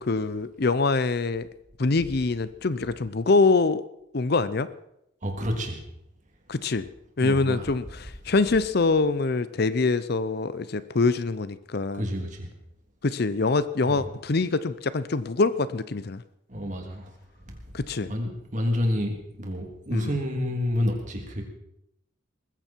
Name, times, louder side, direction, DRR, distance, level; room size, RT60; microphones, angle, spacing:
voice 1, 0.0-1.5 1.8-3.8 4.1-4.7 6.5-6.9 7.2-12.1 13.0-16.2 17.7-18.1 19.9-20.1, left 3 dB, 55° left, 15 dB, 0.7 m, -24 dB
voice 2, 5.2-5.8 7.2-7.7 12.0-12.5 13.8-14.1 16.5-17.1 17.5-17.6 18.0-21.4, left 1 dB, 40° right, 2 dB, 3.3 m, -29 dB
20.5 x 15.0 x 4.6 m, 0.80 s
head